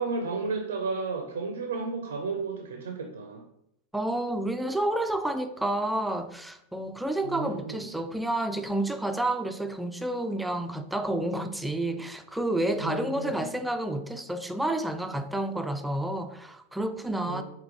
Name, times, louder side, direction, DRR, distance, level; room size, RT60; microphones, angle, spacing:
voice 1, 0.0-3.4 7.2-7.9 12.8-13.5 17.3-17.4, right 4 dB, 70° right, 0.5 m, -33 dB
voice 2, 3.9-17.4, right 1 dB, 5° right, 0.3 m, -30 dB
5.0 x 2.8 x 3.6 m
figure-of-eight pair, 90°, 0 cm